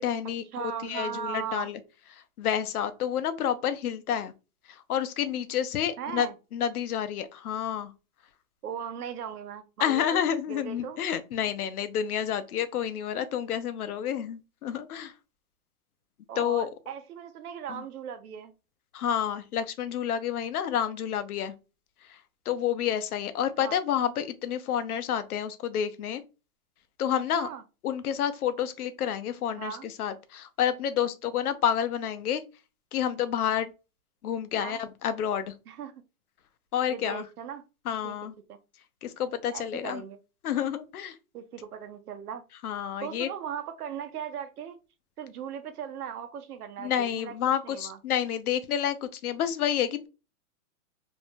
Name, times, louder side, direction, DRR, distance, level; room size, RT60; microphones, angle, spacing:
voice 1, 0.0-1.8 2.1-4.3 4.7-7.9 9.8-15.1 16.4-16.7 17.7-17.8 18.9-21.5 22.1-22.2 22.5-26.2 27.0-27.5 27.8-32.4 32.9-33.7 34.2-35.5 36.7-37.2 37.9-38.3 39.0-40.0 40.4-41.2 42.6-43.3 46.8-50.1, left 9 dB, 75° left, 0.6 m, -29 dB
voice 2, 0.5-1.7 6.0-6.3 8.6-11.0 16.3-18.5 23.6-23.8 27.4-27.6 29.6-29.9 34.6-34.8 35.7-35.9 36.9-37.6 38.0-38.2 38.5-38.6 39.5-40.2 41.3-42.4 43.0-44.8 45.2-47.4 47.6-48.0, right 8 dB, 80° right, 0.7 m, -38 dB
2.6 x 2.1 x 3.0 m
hypercardioid pair, 180°, 45 cm